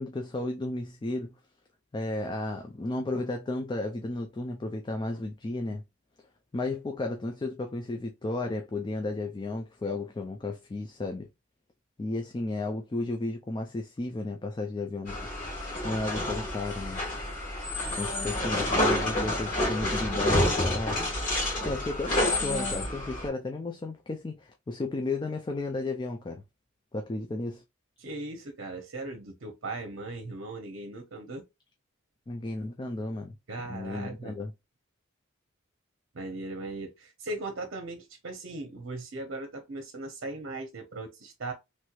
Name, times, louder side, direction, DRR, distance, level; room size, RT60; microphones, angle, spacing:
voice 1, 0.0-1.3 1.9-5.8 6.5-11.3 12.0-15.3 15.8-17.0 17.9-21.0 21.6-26.4 26.9-27.6 32.3-33.4 33.7-34.5, left 2 dB, 20° left, 0.3 m, -33 dB
sound 1, 15.1-23.3, left 1 dB, 40° left, 1.9 m, -29 dB
voice 2, 28.0-31.4 33.5-34.4 36.1-41.5, right 2 dB, 60° right, 0.8 m, -38 dB
3.2 x 3.0 x 2.3 m
head